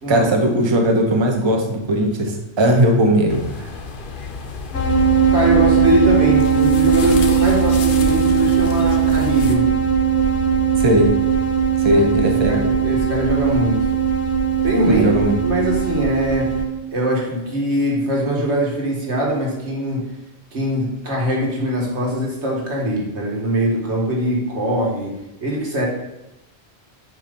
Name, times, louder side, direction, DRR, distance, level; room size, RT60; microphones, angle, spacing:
voice 1, 0.1-3.7 10.8-11.1 11.8-12.6 14.9-15.4, right 1 dB, 25° right, 2 dB, 0.8 m, -18 dB
sound 1, 3.3-9.5, left 3 dB, 55° left, 0.8 m, -31 dB
sound 2, 4.7-16.7, right 6 dB, 80° left, 1.2 m, -18 dB
voice 2, 5.3-9.7 11.9-12.1 12.5-13.9 14.6-15.1 15.4-16.6 16.9-20.1 20.5-25.9, right 1 dB, 85° right, -3 dB, 2.0 m, -22 dB
7.3 x 3.0 x 5.2 m, 0.93 s
omnidirectional pair, 1.1 m